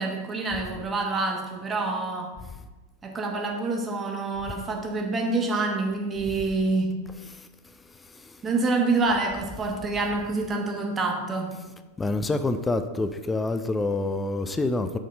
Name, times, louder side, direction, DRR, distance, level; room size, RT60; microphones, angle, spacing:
voice 1, 0.0-2.4 3.0-7.1 8.4-11.5, right 3 dB, 20° right, 1.1 m, -27 dB
voice 2, 12.0-15.0, left 2 dB, 10° left, 0.3 m, -26 dB
6.0 x 4.2 x 5.2 m
figure-of-eight pair, 90°, 0 cm